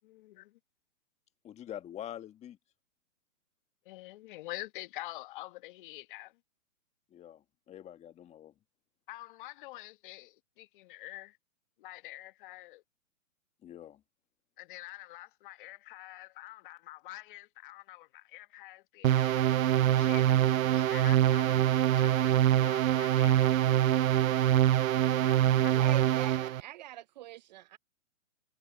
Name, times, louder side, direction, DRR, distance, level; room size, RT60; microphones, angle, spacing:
voice 1, 0.0-0.5 3.8-6.3 9.1-11.4 11.8-12.8 14.6-21.6 21.9-23.5 25.1-26.0, left 18 dB, 40° left, 1.2 m, -47 dB
voice 2, 1.4-2.6 7.1-8.5 13.6-14.0, left 11 dB, 15° left, 1.6 m, -45 dB
sound 1, 19.0-26.6, right 12 dB, 85° right, 0.6 m, -25 dB
voice 3, 25.7-27.8, right 14 dB, 35° right, 0.6 m, -43 dB
hypercardioid pair, 145°, 39 cm